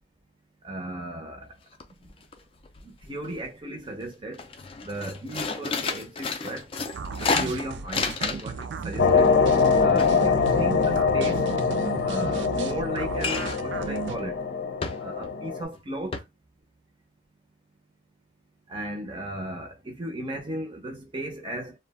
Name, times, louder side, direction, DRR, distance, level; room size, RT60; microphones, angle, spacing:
voice 1, 0.6-1.5 2.8-4.4 4.8-6.7 7.2-9.3 9.8-11.5 12.0-14.4 15.0-16.1 18.7-21.7, right 1 dB, 30° right, 0.5 m, -35 dB
sound 1, 1.4-1.5 1.8-2.3 2.6-3.5 3.9-4.0 4.3-8.6 8.9-11.4 13.2-13.7 14.1-14.3 14.8-15.4 15.7-15.8 16.1-16.2, left 4 dB, 30° left, 0.4 m, -31 dB
sound 2, 6.9-14.2, right 5 dB, 85° right, 0.3 m, -35 dB
sound 3, 9.0-15.6, left 5 dB, 85° left, 0.7 m, -23 dB
2.3 x 2.1 x 3.3 m
head